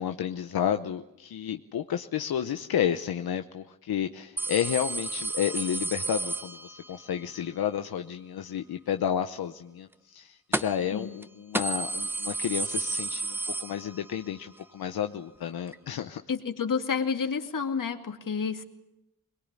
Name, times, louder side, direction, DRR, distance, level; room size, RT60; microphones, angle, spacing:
voice 1, 0.0-16.2, left 9 dB, 85° left, 7 dB, 0.9 m, -31 dB
sound 1, 4.4-7.1 10.5-10.9 11.2-11.3 11.5-14.3 14.6-14.7 15.7-15.8, right 2 dB, 5° right, 1.2 m, -32 dB
voice 2, 16.3-18.6, left 6 dB, 60° left, 6 dB, 2.4 m, -30 dB
22.5 x 22.0 x 9.7 m, 0.89 s
cardioid pair, 65°, 36 cm